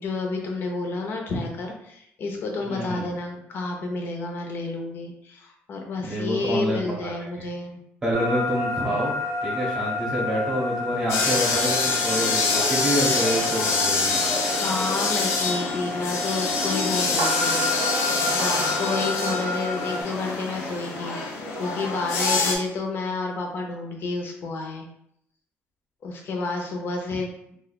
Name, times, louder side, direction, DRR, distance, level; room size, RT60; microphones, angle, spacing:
voice 1, 0.0-7.8 14.5-17.6 17.9-24.9 26.0-27.6, left 3 dB, 50° left, 1 dB, 0.7 m, -30 dB
voice 2, 2.6-3.1 6.0-7.5 8.0-9.1 9.4-14.2, equal, 15° right, -6 dB, 0.9 m, -27 dB
sound 1, 8.1-20.0, left 1 dB, 90° right, 0.7 m, -30 dB
sound 2, 11.1-22.6, left 3 dB, 85° left, 0.7 m, -25 dB
2.6 x 2.3 x 4.0 m, 0.73 s
cardioid pair, 150°, 5 cm